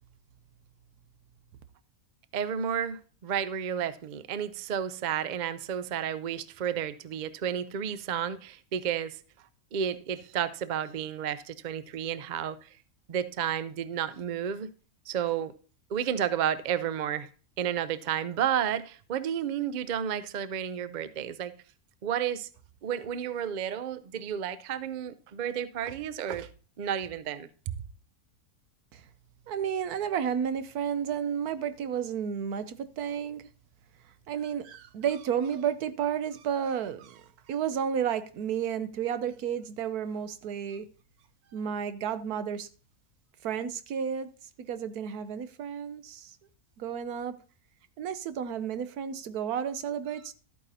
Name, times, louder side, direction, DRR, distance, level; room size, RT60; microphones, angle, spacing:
voice 1, 2.3-9.2 9.7-12.7 13.1-14.7 15.1-15.5 15.9-17.3 17.6-21.5 22.0-22.5 22.8-26.5 26.8-27.5, right 9 dB, 65° right, 0.4 m, -31 dB
voice 2, 29.5-33.4 34.3-40.9 41.5-42.7 43.4-44.3 44.6-46.4 46.8-47.3 48.0-50.3, right 8 dB, 85° right, 1.3 m, -32 dB
13.0 x 9.0 x 2.8 m
omnidirectional pair, 1.6 m